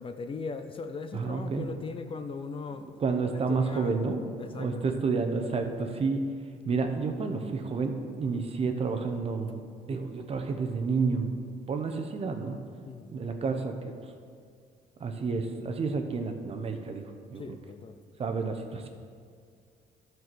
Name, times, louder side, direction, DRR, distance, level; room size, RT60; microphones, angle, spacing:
voice 1, 0.0-2.9 3.3-5.0 12.9-13.1 17.4-18.0, left 4 dB, 30° left, 8 dB, 0.5 m, -39 dB
voice 2, 1.1-1.7 3.0-4.2 4.5-6.3 6.6-9.6 9.9-11.3 11.7-12.6 13.1-13.9 15.0-17.0 17.3-17.6 18.2-18.9, right 4 dB, 35° right, 5 dB, 0.9 m, -30 dB
12.0 x 4.7 x 6.1 m, 2.2 s
cardioid pair, 110°, 17 cm